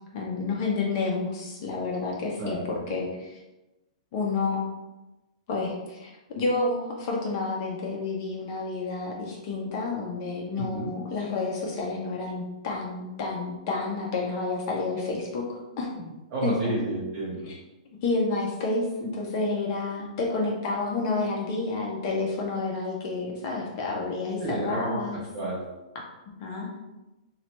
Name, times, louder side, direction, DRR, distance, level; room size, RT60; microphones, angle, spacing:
voice 1, 0.1-2.6 2.9-3.4 4.1-4.7 5.5-6.1 6.4-15.9 16.4-16.5 17.5-17.6 18.0-25.2 26.4-26.7, left 3 dB, 30° left, -1 dB, 0.4 m, -29 dB
voice 2, 2.4-3.0 10.6-10.9 15.9-17.5 24.4-25.6, right 2 dB, 25° right, -8 dB, 0.6 m, -31 dB
3.0 x 2.1 x 2.9 m, 1.0 s
hypercardioid pair, 180°, 4 cm